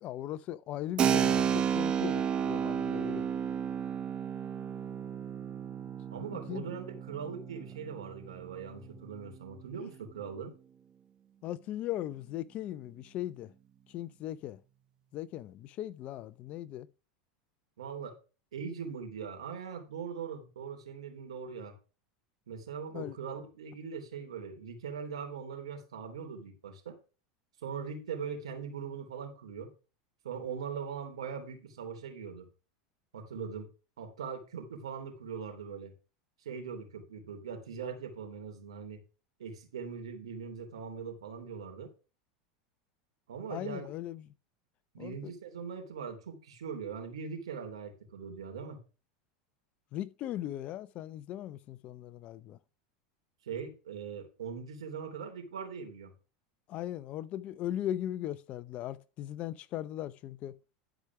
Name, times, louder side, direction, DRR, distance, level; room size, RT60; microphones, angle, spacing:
voice 1, 0.0-3.3 6.3-6.7 11.4-13.5 13.9-14.6 15.1-16.9 22.9-23.2 43.5-44.3 45.0-45.3 49.9-52.6 56.7-60.6, left 12 dB, 45° left, 0.7 m, -38 dB
Keyboard (musical), 1.0-9.4, right 8 dB, 35° right, 1.1 m, -32 dB
voice 2, 6.1-10.5 17.8-18.1 18.5-21.7 22.5-27.0 27.6-29.7 30.2-32.4 33.1-33.7 34.0-35.9 36.4-39.0 39.4-41.9 43.3-43.9 44.9-48.8 53.4-56.1, right 6 dB, 85° right, 3.2 m, -41 dB
11.5 x 5.0 x 5.9 m
hypercardioid pair, 100°, 3 cm